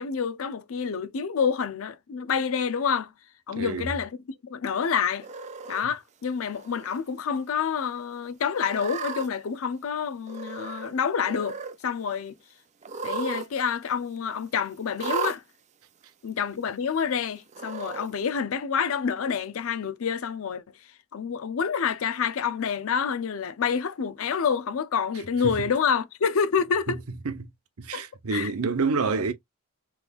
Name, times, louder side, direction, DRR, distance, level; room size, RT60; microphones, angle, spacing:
voice 1, 0.0-3.1 3.5-4.2 4.4-5.3 5.7-12.3 13.0-15.4 16.2-20.6 21.1-27.0 27.9-28.0 28.3-28.5, left 6 dB, 65° left, 0.5 m, -28 dB
voice 2, 3.5-3.9 25.4-25.5 26.9-27.0 27.2-27.5 27.8-29.3, right 4 dB, 80° right, 0.7 m, -28 dB
Cat, 5.2-5.8 6.5-7.0 7.4-7.5 8.5-9.3 10.3-10.9 11.2-11.8 12.8-13.5 13.8-13.9 15.0-15.4 16.3-16.4 17.5-18.1, right 5 dB, 30° right, 0.4 m, -34 dB
3.5 x 3.1 x 2.3 m
head